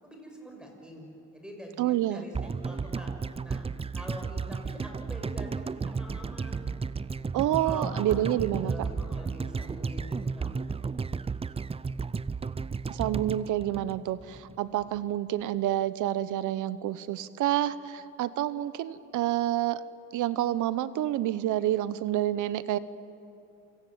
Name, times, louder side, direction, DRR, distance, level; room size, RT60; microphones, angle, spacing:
voice 1, 0.0-3.1 3.4-6.7 7.6-10.5, equal, 5° right, 1 dB, 6.7 m, -45 dB
voice 2, 1.8-2.2 7.3-8.7 12.9-19.8 20.1-22.8, right 13 dB, 85° right, 16 dB, 0.9 m, -28 dB
sound 1, 2.3-14.5 14.8-14.9, right 5 dB, 20° right, 0.5 m, -33 dB
27.0 x 17.5 x 9.3 m, 2.8 s
cardioid pair, 90°, 30 cm